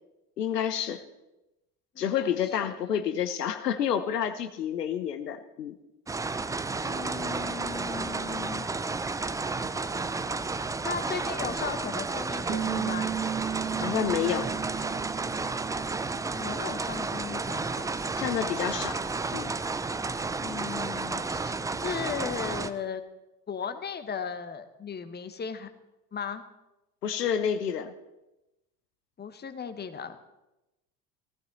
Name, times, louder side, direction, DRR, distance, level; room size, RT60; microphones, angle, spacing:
voice 1, 0.4-1.0 2.0-5.8 13.8-14.5 18.2-19.0 19.3-19.5 27.0-27.9, left 9 dB, 75° left, 9 dB, 1.0 m, -29 dB
voice 2, 1.9-2.4 2.6-2.7 6.8-8.7 10.8-13.1 16.3-17.9 20.4-21.6 21.8-23.0 23.5-25.7 26.1-26.4 29.2-30.2, left 6 dB, 20° left, 9 dB, 1.3 m, -36 dB
sound 1, 6.1-22.7, right 3 dB, 5° right, 0.5 m, -32 dB
Bass guitar, 12.5-18.7, right 9 dB, 40° right, 1.6 m, -37 dB
19.0 x 14.5 x 4.1 m, 0.99 s
figure-of-eight pair, 65°, 48 cm